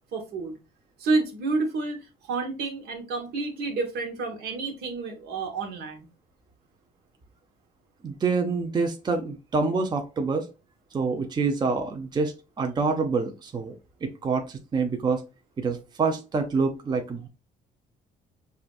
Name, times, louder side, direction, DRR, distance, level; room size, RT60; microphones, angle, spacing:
voice 1, 0.1-0.5 1.0-2.0 2.3-6.1, right 3 dB, 75° right, 1.4 m, -29 dB
voice 2, 8.0-10.5 10.9-13.7 14.0-15.2 15.6-17.3, right 4 dB, 25° right, 0.6 m, -26 dB
5.5 x 2.5 x 2.4 m
cardioid pair, 110°, 17 cm